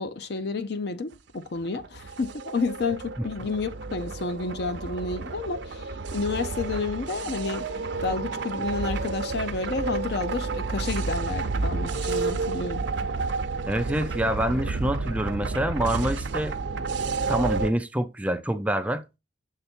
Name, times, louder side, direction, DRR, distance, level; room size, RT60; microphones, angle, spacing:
voice 1, 0.0-7.7 8.0-12.8, left 3 dB, 60° left, 0.6 m, -30 dB
sound 1, 1.6-17.7, right 3 dB, 75° right, 0.6 m, -31 dB
voice 2, 13.7-16.6 17.3-19.0, right 1 dB, 10° right, 0.4 m, -26 dB
6.7 x 3.4 x 4.3 m
head